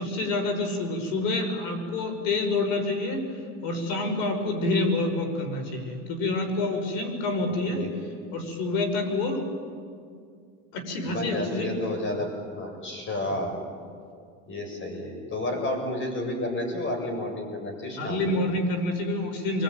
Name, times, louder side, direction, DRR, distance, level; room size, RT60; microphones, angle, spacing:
voice 1, 0.0-7.8 8.3-9.5 10.7-11.8 13.2-13.4 18.0-19.6, left 2 dB, 65° left, 6 dB, 6.0 m, -28 dB
voice 2, 11.1-12.3 12.5-13.6 14.5-18.4, left 1 dB, 30° left, 3 dB, 7.8 m, -31 dB
28.5 x 22.5 x 9.3 m, 2.2 s
supercardioid pair, 110°, 38 cm